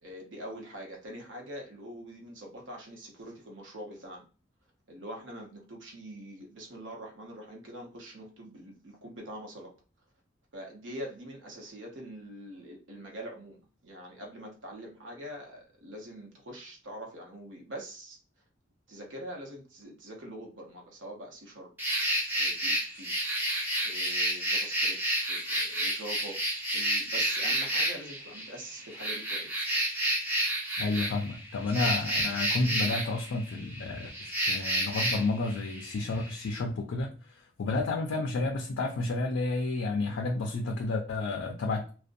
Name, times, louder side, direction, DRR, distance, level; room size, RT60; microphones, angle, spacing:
voice 1, 0.0-4.2 4.9-9.7 10.5-18.2 18.9-21.7 22.3-23.2 23.8-25.0 25.3-26.4 26.7-29.8 32.5-32.8, right 1 dB, 80° right, 1 dB, 0.7 m, -44 dB
sound 1, 21.8-36.6, right 1 dB, 10° right, 0.5 m, -30 dB
voice 2, 30.8-41.9, left 3 dB, 85° left, 2 dB, 0.4 m, -31 dB
2.5 x 2.1 x 2.5 m, 0.36 s
head